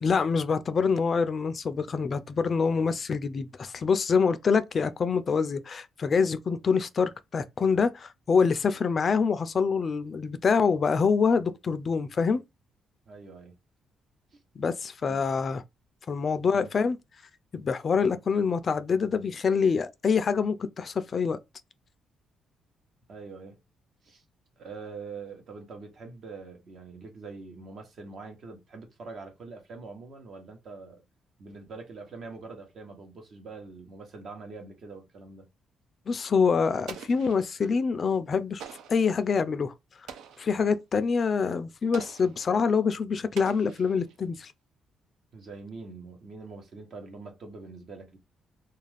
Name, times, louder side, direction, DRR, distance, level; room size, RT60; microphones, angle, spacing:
voice 1, 0.0-12.4 14.6-15.6 16.1-17.0 17.5-21.4 36.1-38.6 38.9-39.7 40.4-44.5, left 5 dB, 45° left, 0.3 m, -25 dB
voice 2, 13.1-13.5 15.1-15.2 16.5-16.7 23.1-23.6 24.0-24.2 24.6-31.0 31.4-35.5 45.3-48.2, right 4 dB, 55° right, 0.9 m, -44 dB
Explosion, 36.9-37.8 38.6-39.1 40.1-40.6 41.9-42.5 43.4-44.2, right 7 dB, 85° right, 0.4 m, -45 dB
2.4 x 2.3 x 3.3 m
cardioid pair, 90°, 0 cm